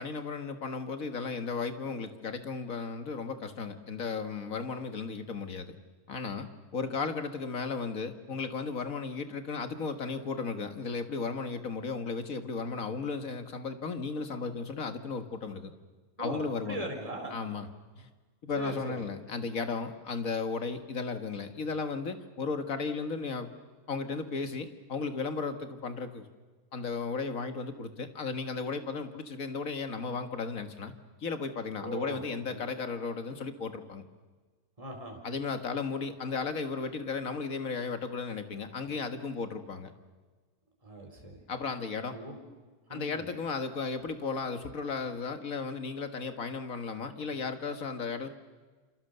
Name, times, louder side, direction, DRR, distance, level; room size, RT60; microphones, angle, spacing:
voice 1, 0.0-5.8 6.1-15.7 16.2-16.9 17.3-17.7 18.0-18.1 18.4-23.5 23.9-26.2 26.7-30.9 31.2-34.0 35.2-39.9 41.5-42.2 42.9-48.3, left 4 dB, 60° left, 8 dB, 2.1 m, -35 dB
voice 2, 16.2-17.3 18.5-19.0 31.8-32.6 34.8-35.2 40.8-41.4 42.1-42.4 42.9-43.3, right 1 dB, 20° right, 1 dB, 4.2 m, -40 dB
27.5 x 27.0 x 6.9 m, 1.4 s
omnidirectional pair, 1.6 m